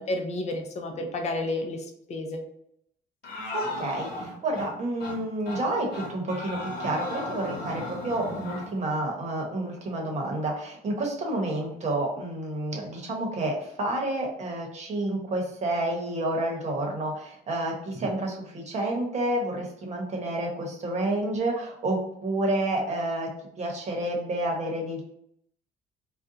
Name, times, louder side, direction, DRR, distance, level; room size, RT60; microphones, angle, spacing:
voice 1, 0.0-2.4, left 2 dB, 40° left, 4 dB, 0.6 m, -31 dB
sound 1, 3.2-4.7 5.0-5.2 5.5-5.6 5.9-8.7, left 2 dB, 70° left, 1.0 m, -36 dB
voice 2, 3.5-23.3 23.6-25.0, right 1 dB, 40° right, 0 dB, 1.0 m, -29 dB
2.6 x 2.2 x 3.8 m, 0.72 s
cardioid pair, 110°, 17 cm